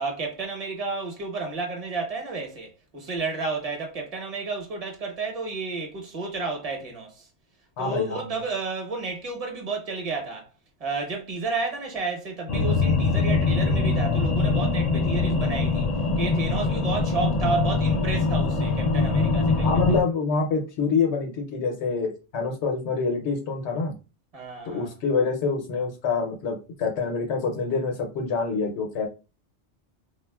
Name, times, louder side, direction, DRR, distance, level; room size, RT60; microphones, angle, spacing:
voice 1, 0.0-7.3 7.8-10.5 10.8-15.9 16.2-19.8 24.3-24.9, right 3 dB, 35° right, 0.8 m, -31 dB
voice 2, 7.8-8.3 19.6-23.9 24.7-29.1, left 4 dB, 80° left, 1.0 m, -26 dB
sound 1, 12.5-20.0, left 3 dB, 60° left, 0.4 m, -23 dB
3.5 x 2.3 x 2.2 m
omnidirectional pair, 1.1 m